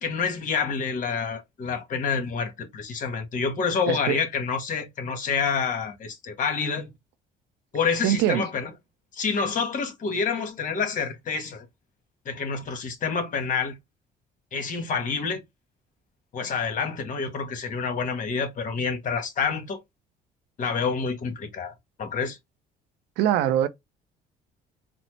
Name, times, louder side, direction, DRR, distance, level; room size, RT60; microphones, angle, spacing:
voice 1, 0.0-6.9 7.7-8.7 9.1-11.6 12.2-13.7 14.5-15.4 16.3-19.8 20.6-21.7 22.0-22.4, left 5 dB, 50° left, 1.3 m, -28 dB
voice 2, 3.9-4.2 8.0-8.5 23.2-23.7, right 12 dB, 90° right, 0.6 m, -22 dB
4.1 x 2.0 x 3.1 m
cardioid pair, 110°, 17 cm